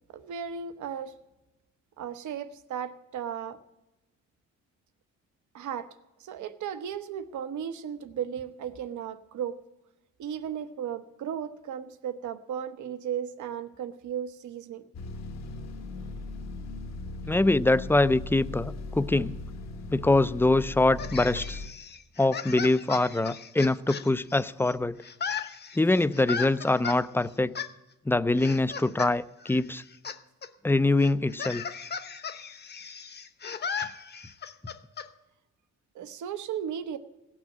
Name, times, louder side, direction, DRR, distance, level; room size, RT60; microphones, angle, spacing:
voice 1, 0.1-1.1 2.0-3.6 5.5-5.9 6.2-9.6 10.2-14.8 35.9-37.0, right 8 dB, 75° right, 11 dB, 1.0 m, -35 dB
sound 1, 14.9-21.7, left 2 dB, 60° left, 1.1 m, -38 dB
voice 2, 17.3-19.3 19.9-21.6 22.2-25.0 25.8-27.5 28.1-29.8 30.6-31.6, left 2 dB, 10° left, 16 dB, 0.4 m, -24 dB
sound 2, 21.0-24.7 25.0-27.0 27.5-27.7 28.4-29.1 29.4-30.2 30.4-30.5 31.0-35.1, left 6 dB, 35° left, 0.9 m, -36 dB
16.5 x 6.2 x 8.7 m, 0.98 s
cardioid pair, 90°, 30 cm